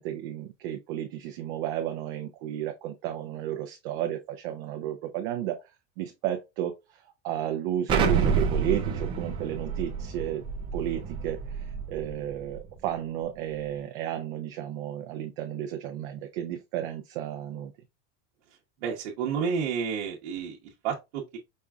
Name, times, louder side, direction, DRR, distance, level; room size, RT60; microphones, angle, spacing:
voice 1, 0.0-5.6 6.0-10.4 10.7-17.7, right 11 dB, 55° right, 0.6 m, -33 dB
Explosion, 7.9-12.6, right 6 dB, 15° right, 0.4 m, -28 dB
voice 2, 18.8-21.4, right 6 dB, 70° right, 1.1 m, -31 dB
5.3 x 2.4 x 3.4 m
supercardioid pair, 175°, 34 cm